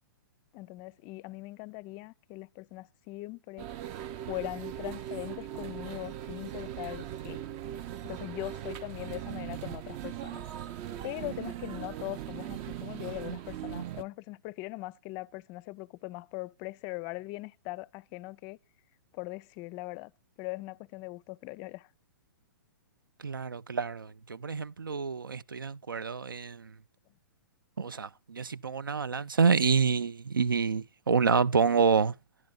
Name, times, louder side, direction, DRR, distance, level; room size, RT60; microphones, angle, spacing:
voice 1, 0.5-3.7 4.2-7.4 8.0-10.4 11.0-18.6 19.1-20.1 20.4-21.9, left 21 dB, 35° left, 0.4 m, -40 dB
sound 1, 3.6-14.0, right 11 dB, 35° right, 0.6 m, -39 dB
voice 2, 23.2-26.7 27.8-32.2, right 5 dB, 85° right, 0.4 m, -27 dB
11.0 x 10.5 x 3.8 m
figure-of-eight pair, 120°, 11 cm